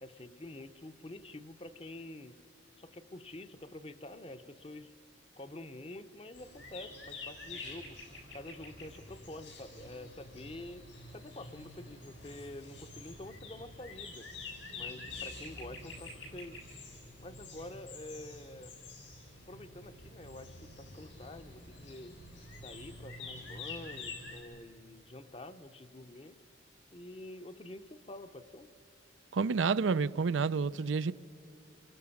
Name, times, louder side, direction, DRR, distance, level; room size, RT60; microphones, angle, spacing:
voice 1, 0.0-2.4 2.8-4.9 5.4-8.0 8.3-14.3 14.7-16.6 17.2-18.7 19.5-22.2 22.6-26.4 26.9-28.7, left 1 dB, 30° left, 0.8 m, -47 dB
sound 1, 6.3-24.4, left 3 dB, 85° left, 7.8 m, -47 dB
voice 2, 29.3-31.1, right 5 dB, 85° right, 0.5 m, -29 dB
28.0 x 23.0 x 7.1 m
head